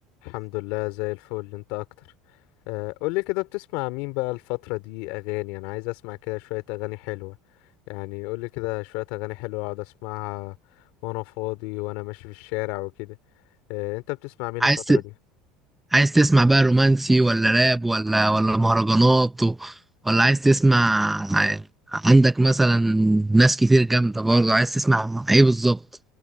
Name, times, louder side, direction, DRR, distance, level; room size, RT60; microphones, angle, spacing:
voice 1, 0.2-1.8 2.7-7.4 7.9-10.6 11.0-13.2 13.7-15.0, left 24 dB, 75° left, 2.7 m, -31 dB
voice 2, 14.6-15.0 15.9-19.7 20.1-21.6 21.9-25.8, right 2 dB, 5° right, 0.6 m, -19 dB
cardioid pair, 135°, 2 cm